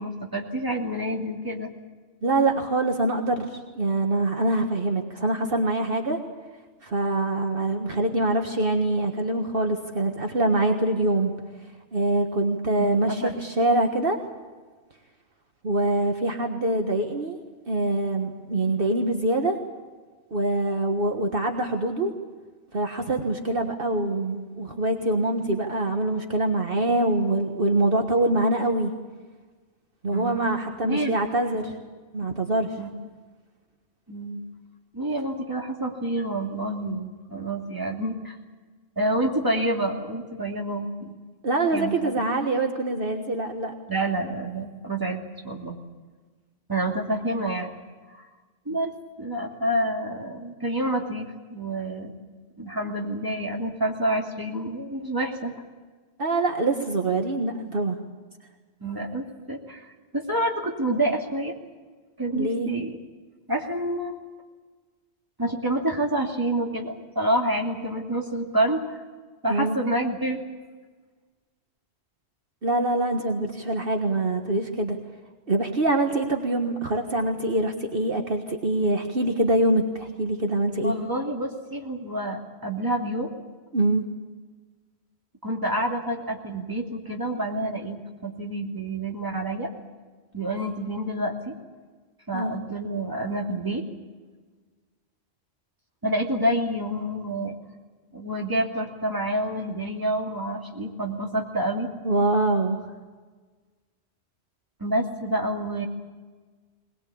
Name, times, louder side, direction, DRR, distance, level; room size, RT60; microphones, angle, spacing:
voice 1, 0.0-1.7 12.8-13.3 30.1-30.4 30.8-31.2 31.5-31.6 32.8-32.9 34.1-34.4 34.9-38.4 39.0-41.2 41.7-42.1 43.9-45.8 46.7-47.7 48.1-48.3 48.7-48.9 49.2-52.1 52.6-55.6 58.8-61.5 62.2-63.0 63.5-64.2 65.4-69.0 69.4-70.4 80.7-83.3 85.4-89.7 90.3-91.5 92.3-93.8 96.0-97.5 98.1-101.9 104.8-105.9, right 1 dB, 20° right, 0 dB, 2.8 m, -28 dB
voice 2, 2.2-6.2 6.8-11.3 11.9-14.2 15.6-17.4 17.7-19.6 20.3-22.1 22.7-28.9 30.0-31.7 32.1-32.8 41.4-43.7 56.2-58.0 62.3-62.7 69.5-69.8 72.6-75.0 75.5-80.9 83.7-84.0 92.3-92.5 102.0-102.8, right 2 dB, 55° right, 4 dB, 1.7 m, -24 dB
22.0 x 20.0 x 8.6 m, 1.4 s
omnidirectional pair, 1.1 m